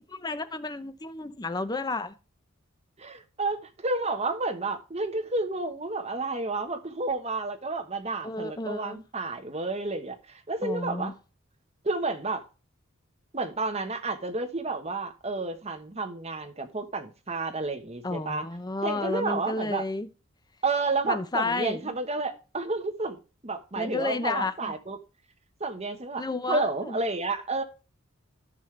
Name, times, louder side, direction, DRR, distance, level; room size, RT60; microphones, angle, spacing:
voice 1, 0.2-2.1 8.2-9.0 10.6-11.1 18.0-20.1 21.0-21.9 23.8-24.7 26.2-27.0, left 2 dB, 20° left, 0.6 m, -31 dB
voice 2, 3.0-11.1 11.8-12.4 13.3-18.5 18.8-19.8 20.6-25.0 25.6-27.6, right 3 dB, 30° right, 1.2 m, -31 dB
13.5 x 5.5 x 3.3 m
head